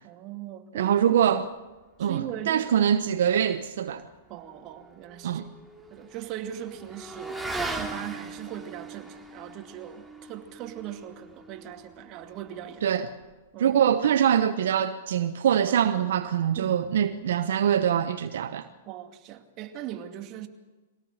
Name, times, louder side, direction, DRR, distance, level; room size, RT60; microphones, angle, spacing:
voice 1, 0.0-1.2 2.0-2.9 4.3-5.5 5.9-7.4 7.7-12.9 13.5-13.8 16.6-16.7 18.9-20.5, right 11 dB, 40° right, 2.3 m, -39 dB
voice 2, 0.7-1.4 2.0-4.1 5.2-5.4 12.8-13.1 13.6-18.7, right 9 dB, 70° right, 1.0 m, -24 dB
Motorcycle / Accelerating revving vroom, 4.5-13.3, right 2 dB, 5° right, 2.9 m, -40 dB
23.5 x 17.5 x 6.7 m
hypercardioid pair, 120°, 0 cm